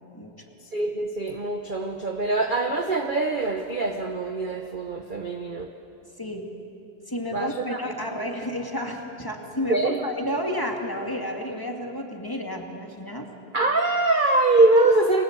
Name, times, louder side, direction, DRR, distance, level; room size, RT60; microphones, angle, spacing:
voice 1, 0.7-5.7 7.3-7.8 9.7-10.0 13.5-15.2, right 2 dB, 35° right, 4 dB, 1.0 m, -23 dB
voice 2, 6.2-6.5 7.1-13.3, equal, 10° left, 1 dB, 2.2 m, -31 dB
30.0 x 22.5 x 8.3 m, 2.9 s
omnidirectional pair, 2.1 m